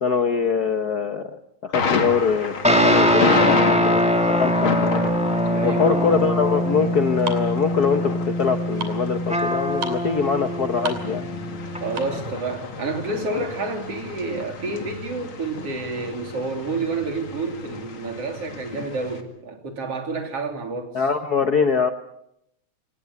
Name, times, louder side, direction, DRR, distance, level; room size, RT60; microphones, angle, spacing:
voice 1, 0.0-1.4 1.6-5.0 5.6-11.2 20.9-21.9, left 6 dB, 80° left, 8 dB, 0.8 m, -23 dB
Thunder, 1.7-19.2, left 5 dB, 45° left, 2.8 m, -30 dB
sound 1, 2.6-12.3, equal, ahead, 2.1 m, -23 dB
voice 2, 5.4-6.2 11.8-21.0, right 3 dB, 50° right, 4 dB, 4.3 m, -29 dB
sound 2, 6.1-12.3, right 4 dB, 85° right, 4.3 m, -36 dB
25.0 x 19.5 x 8.3 m, 0.78 s
omnidirectional pair, 3.4 m